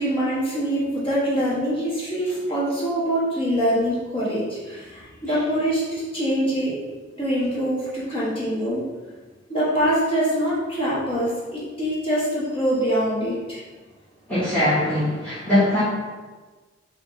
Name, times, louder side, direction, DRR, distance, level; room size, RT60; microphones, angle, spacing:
voice 1, 0.0-6.8 7.2-8.8 9.5-13.6, equal, 30° left, -8 dB, 1.1 m, -24 dB
voice 2, 14.3-15.8, left 1 dB, 10° left, -14 dB, 1.1 m, -21 dB
5.9 x 2.6 x 3.1 m, 1.3 s
head